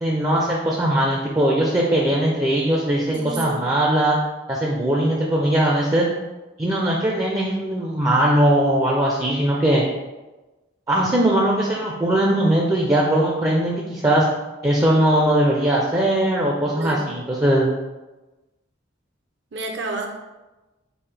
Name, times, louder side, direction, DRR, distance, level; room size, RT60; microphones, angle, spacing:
voice 1, 0.0-4.2 4.5-6.1 6.6-9.8 10.9-14.2 14.6-17.7, right 1 dB, 15° right, -3 dB, 0.4 m, -20 dB
voice 2, 3.1-3.6 16.7-17.1 19.5-20.1, right 3 dB, 60° right, 2 dB, 0.6 m, -29 dB
5.4 x 2.6 x 3.3 m, 1.1 s
head